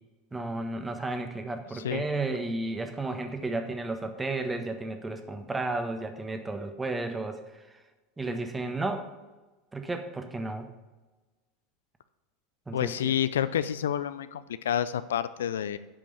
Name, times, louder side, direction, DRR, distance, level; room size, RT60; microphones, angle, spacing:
voice 1, 0.3-7.8 8.2-9.1 9.7-10.7 12.7-13.1, right 2 dB, 15° right, 6 dB, 1.3 m, -33 dB
voice 2, 12.7-15.8, left 10 dB, 80° left, 14 dB, 0.5 m, -29 dB
8.8 x 5.3 x 6.8 m, 1.2 s
hypercardioid pair, 85°, 0 cm